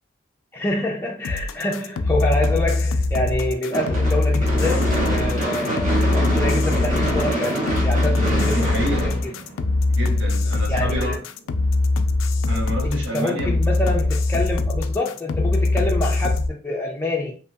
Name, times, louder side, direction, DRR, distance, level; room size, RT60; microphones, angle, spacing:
voice 1, 0.5-9.3 10.7-11.2 12.8-17.4, left 1 dB, 10° left, 0.4 m, -27 dB
sound 1, 1.2-16.5, left 2 dB, 90° left, 0.3 m, -22 dB
Gunshot gunfire / Fireworks, 3.7-10.0, right 1 dB, 45° right, 1.1 m, -25 dB
voice 2, 8.5-9.1 9.6-11.2 12.5-13.6, right 1 dB, 75° right, 0.9 m, -29 dB
2.8 x 2.6 x 2.3 m
head